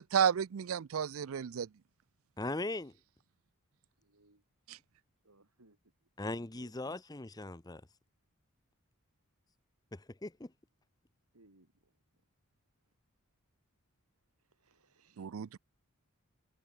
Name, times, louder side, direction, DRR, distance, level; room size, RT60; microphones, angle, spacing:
voice 1, 0.0-1.7 4.7-4.8 15.2-15.6, right 8 dB, 65° right, 0.4 m, -32 dB
voice 2, 2.4-2.9 6.2-7.8 9.9-10.5, left 2 dB, 15° left, 0.7 m, -39 dB
voice 3, 4.0-4.4 5.2-5.8 6.3-6.8 11.3-12.0 12.8-12.9 14.4-15.3, right 2 dB, 80° right, 3.1 m, -66 dB
head